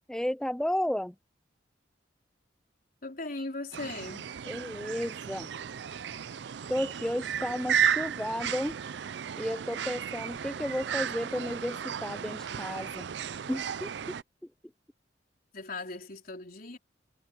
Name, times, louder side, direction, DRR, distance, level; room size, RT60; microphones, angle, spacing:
voice 1, 0.1-1.1 4.5-5.5 6.7-8.8 9.4-13.1 13.5-13.9, equal, 5° left, 0.3 m, -33 dB
voice 2, 3.0-4.3 15.5-16.8, left 2 dB, 50° left, 4.2 m, -38 dB
sound 1, 3.7-14.2, right 8 dB, 65° right, 0.4 m, -34 dB
head